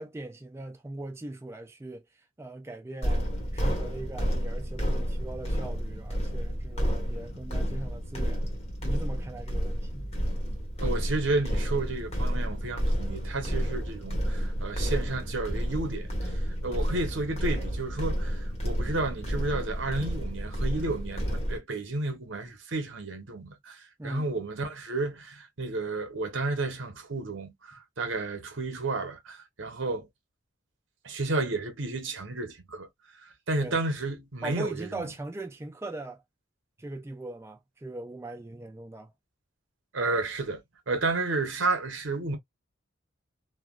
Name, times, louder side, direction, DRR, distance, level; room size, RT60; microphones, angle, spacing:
voice 1, 0.0-8.5 8.8-10.1 24.0-24.4 33.6-33.8 34.4-36.2 36.8-39.1, right 2 dB, 15° right, 0.4 m, -40 dB
sound 1, 3.0-21.6, equal, 35° left, 1.1 m, -30 dB
voice 2, 10.8-16.3 16.6-30.1 31.0-32.9 33.5-35.1 39.9-42.4, right 2 dB, 75° right, 1.0 m, -32 dB
3.2 x 2.2 x 2.3 m
head